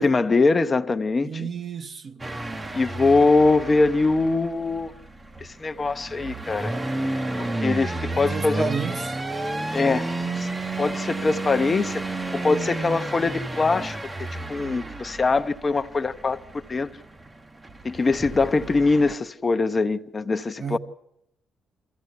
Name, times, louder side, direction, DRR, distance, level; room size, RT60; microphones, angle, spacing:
voice 1, 0.0-1.3 2.7-4.9 5.4-6.7 7.4-8.6 9.7-10.1 10.3-10.5 10.8-14.0 14.5-16.9 17.8-20.8, left 3 dB, 30° left, 0.8 m, -22 dB
voice 2, 1.2-2.3 8.1-9.2 20.6-20.8, right 5 dB, 50° right, 1.0 m, -32 dB
sound 1, 2.2-19.1, right 2 dB, 20° right, 0.9 m, -32 dB
23.0 x 15.0 x 8.2 m
cardioid pair, 90°, 0 cm